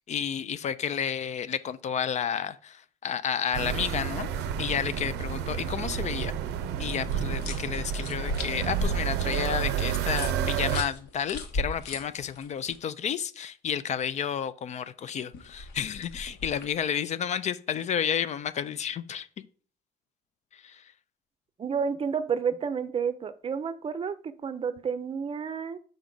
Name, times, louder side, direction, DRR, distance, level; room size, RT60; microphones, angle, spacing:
voice 1, 0.1-4.3 4.6-6.3 6.8-19.5 20.5-20.8, left 8 dB, 45° left, 0.4 m, -31 dB
sound 1, 3.5-10.8, right 9 dB, 85° right, 0.6 m, -30 dB
sound 2, 6.8-12.8 15.3-16.8, left 2 dB, 75° left, 1.2 m, -36 dB
voice 2, 21.6-25.8, right 6 dB, 35° right, 0.6 m, -30 dB
5.7 x 5.1 x 3.8 m
cardioid pair, 110°, 17 cm